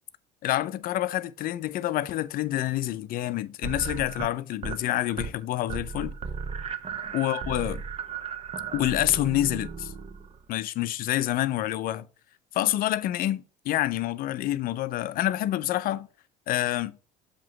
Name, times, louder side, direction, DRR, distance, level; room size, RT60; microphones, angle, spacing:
voice 1, 0.4-6.1 7.1-7.8 8.7-9.9 10.5-12.1 12.5-16.1 16.5-17.0, left 14 dB, 55° left, 0.5 m, -27 dB
sound 1, 3.6-4.8 5.1-5.4 5.7-10.4, right 6 dB, 35° right, 0.8 m, -35 dB
7.4 x 3.0 x 5.8 m
supercardioid pair, 85°, 18 cm